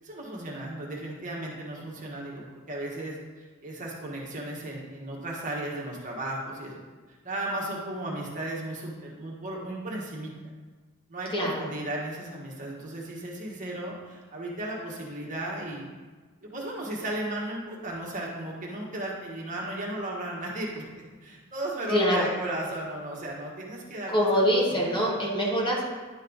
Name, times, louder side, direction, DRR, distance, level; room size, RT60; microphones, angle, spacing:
voice 1, 0.0-6.8 7.2-10.3 11.1-15.8 16.4-20.9 21.2-24.1 24.7-25.1, right 1 dB, 40° right, -3 dB, 1.4 m, -35 dB
voice 2, 11.3-11.7 21.9-22.3 24.1-25.8, equal, 25° left, -4 dB, 1.4 m, -24 dB
10.5 x 4.3 x 3.9 m, 1.4 s
head